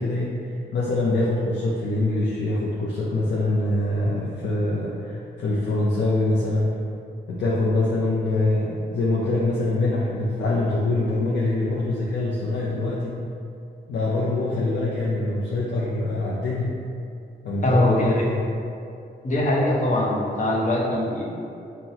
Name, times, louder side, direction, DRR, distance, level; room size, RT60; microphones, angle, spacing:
voice 1, 0.0-6.7 7.3-13.2 13.9-16.7 17.4-18.4, left 2 dB, 85° left, -6 dB, 0.5 m, -24 dB
voice 2, 17.6-18.1 19.2-21.2, left 1 dB, 45° left, -4 dB, 0.8 m, -22 dB
5.5 x 2.1 x 2.7 m, 2.6 s
cardioid pair, 85°, 18 cm